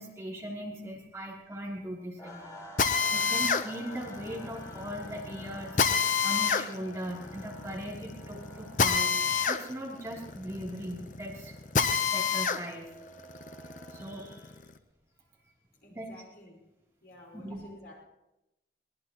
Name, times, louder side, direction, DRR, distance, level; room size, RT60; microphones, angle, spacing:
voice 1, 0.0-11.6 12.1-12.9 13.9-14.5 15.9-16.1 17.3-17.7, equal, 15° right, -4 dB, 2.9 m, -39 dB
sound 1, 2.2-14.6, equal, 20° left, 4.0 m, -50 dB
Drill, 2.8-12.6 13.1-14.7, left 6 dB, 45° left, 0.7 m, -29 dB
voice 2, 15.8-16.6 17.0-18.0, left 1 dB, 65° left, -1 dB, 5.0 m, -52 dB
23.0 x 19.5 x 3.0 m, 0.95 s
head